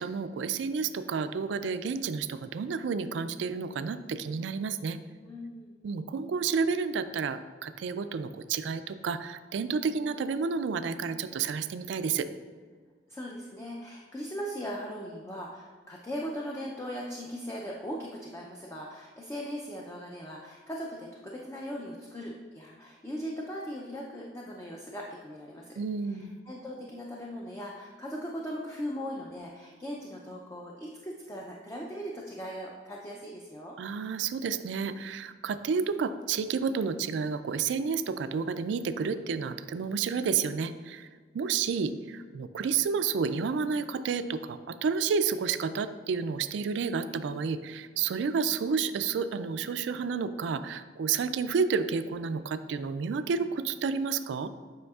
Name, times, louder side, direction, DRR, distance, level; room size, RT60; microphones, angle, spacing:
voice 1, 0.0-5.0 5.8-12.3 25.8-26.3 33.8-41.1 41.3-54.5, right 5 dB, 75° right, 11 dB, 0.3 m, -30 dB
voice 2, 5.2-5.8 13.1-25.8 26.1-33.8, equal, 15° left, -2 dB, 0.4 m, -39 dB
7.6 x 5.6 x 2.4 m, 1.5 s
head